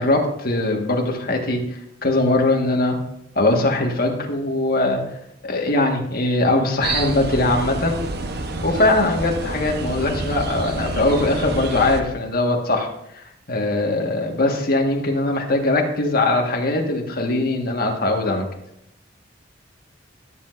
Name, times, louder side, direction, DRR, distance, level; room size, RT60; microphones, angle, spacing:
voice 1, 0.0-3.0 3.3-5.0 5.4-8.0 8.6-18.5, left 2 dB, 50° left, 1 dB, 1.6 m, -21 dB
sound 1, 6.8-12.0, right 2 dB, 60° right, 0.9 m, -28 dB
13.5 x 7.7 x 2.6 m, 0.77 s
head